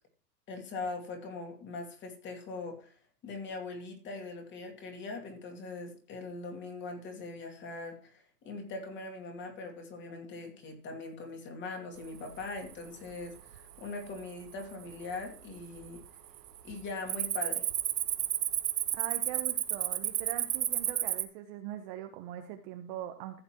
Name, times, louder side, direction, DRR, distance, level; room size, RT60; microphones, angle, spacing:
voice 1, 0.5-3.0 3.2-16.0 16.6-17.7, left 3 dB, 20° left, 3 dB, 2.4 m, -41 dB
Cricket, 12.3-12.7 13.2-13.6 14.2-14.3 14.9-15.5 15.8-16.0 16.4-21.2, right 12 dB, 70° right, 1.2 m, -32 dB
voice 2, 19.0-23.4, right 11 dB, 30° right, 6 dB, 0.8 m, -42 dB
15.5 x 7.0 x 3.0 m, 0.43 s
hypercardioid pair, 140°, 50 cm